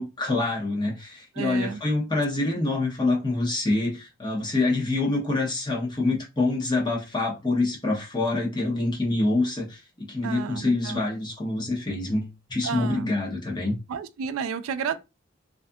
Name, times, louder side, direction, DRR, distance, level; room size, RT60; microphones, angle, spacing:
voice 1, 0.0-13.8, left 2 dB, 20° left, 0.8 m, -26 dB
voice 2, 1.4-1.8 10.2-11.1 12.6-13.1 13.9-15.0, right 6 dB, 90° right, 0.3 m, -31 dB
2.5 x 2.3 x 2.5 m
head